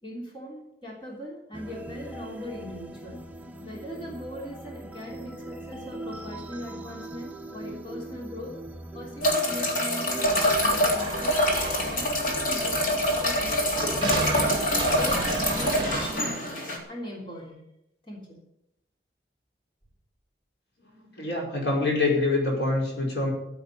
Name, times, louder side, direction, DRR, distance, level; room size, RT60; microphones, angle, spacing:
voice 1, 0.0-3.2 3.6-8.6 8.9-11.4 11.8-14.0 14.4-16.3 16.9-17.6 18.0-18.4, equal, 30° left, -3 dB, 3.5 m, -40 dB
sound 1, 1.5-16.4, right 1 dB, 10° right, 0.9 m, -40 dB
sound 2, 9.2-16.8, left 1 dB, 50° left, 3.4 m, -25 dB
sound 3, 10.2-16.1, right 2 dB, 25° right, 2.1 m, -33 dB
voice 2, 21.2-23.3, left 2 dB, 80° left, -1 dB, 5.0 m, -25 dB
13.5 x 7.9 x 8.3 m, 0.83 s
head